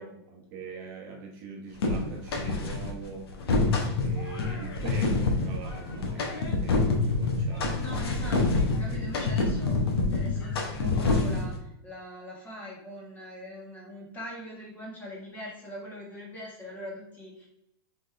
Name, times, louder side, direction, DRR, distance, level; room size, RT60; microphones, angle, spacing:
voice 1, 0.0-3.3 4.0-8.0 8.9-9.0, right 4 dB, 40° right, 0 dB, 0.9 m, -42 dB
sound 1, 1.8-2.9 3.3-11.6, left 3 dB, 75° left, 1.0 m, -27 dB
voice 2, 7.8-9.8 10.1-17.5, equal, 15° left, -3 dB, 1.3 m, -42 dB
4.1 x 3.6 x 3.3 m, 0.82 s
supercardioid pair, 160°, 13 cm